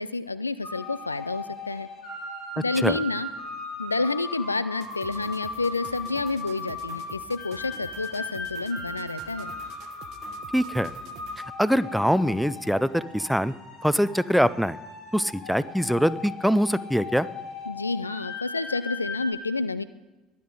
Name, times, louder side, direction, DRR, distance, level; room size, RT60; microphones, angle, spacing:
voice 1, 0.0-1.9 2.6-3.3 3.8-9.5 17.7-19.8, left 3 dB, 85° left, 17 dB, 0.4 m, -29 dB
sound 1, 0.6-19.3, left 2 dB, 55° left, 3.8 m, -38 dB
sound 2, 4.8-11.6, right 9 dB, 55° right, 0.9 m, -49 dB
voice 2, 10.5-10.9 11.6-13.5 13.8-14.8 15.1-17.3, equal, ahead, 16 dB, 0.5 m, -23 dB
22.0 x 8.5 x 3.8 m, 1.1 s
figure-of-eight pair, 60°, 0 cm